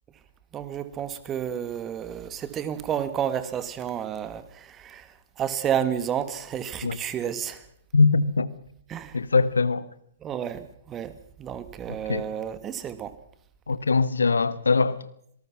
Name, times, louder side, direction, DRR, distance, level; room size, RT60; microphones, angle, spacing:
voice 1, 0.5-7.7 8.9-9.2 10.2-13.2, right 9 dB, 20° right, 1.9 m, -31 dB
voice 2, 7.9-8.5 9.1-9.9 12.1-12.2 13.7-15.0, left 4 dB, 80° left, 1.2 m, -21 dB
26.5 x 18.5 x 6.0 m
figure-of-eight pair, 120°, 0 cm